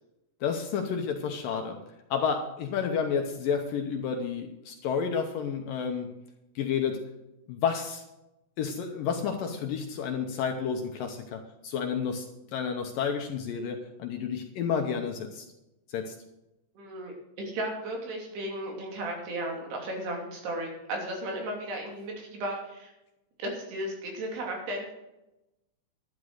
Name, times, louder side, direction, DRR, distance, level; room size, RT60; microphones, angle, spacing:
voice 1, 0.4-1.8 2.1-6.1 6.6-7.0 7.5-8.0 8.6-15.5 15.9-16.2, left 6 dB, 70° left, 4 dB, 2.3 m, -30 dB
voice 2, 16.8-22.9 23.4-24.9, right 1 dB, 70° right, 1 dB, 4.9 m, -35 dB
11.5 x 11.0 x 6.5 m, 0.93 s
omnidirectional pair, 4.8 m